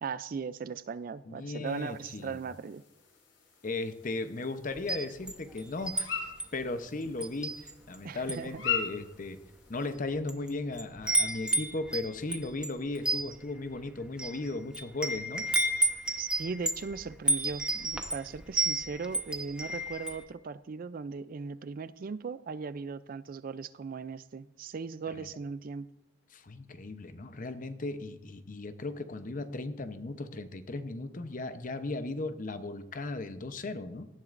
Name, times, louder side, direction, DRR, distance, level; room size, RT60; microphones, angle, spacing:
voice 1, 0.0-2.8 8.0-8.6 16.2-25.9, right 5 dB, 50° right, 15 dB, 0.4 m, -38 dB
voice 2, 1.3-2.4 3.6-6.3 6.5-9.4 9.7-15.4 25.1-25.3 26.3-34.1, left 2 dB, 45° left, 10 dB, 0.8 m, -36 dB
sound 1, 1.6-9.9, left 7 dB, 90° left, 4.9 m, -41 dB
Wind chime, 4.8-6.0 6.4-6.6 7.2-7.9 8.2-8.5 9.3-9.4 10.0-10.5 10.7-20.2, right 2 dB, 5° right, 1.0 m, -31 dB
18.0 x 13.0 x 2.6 m, 0.92 s
head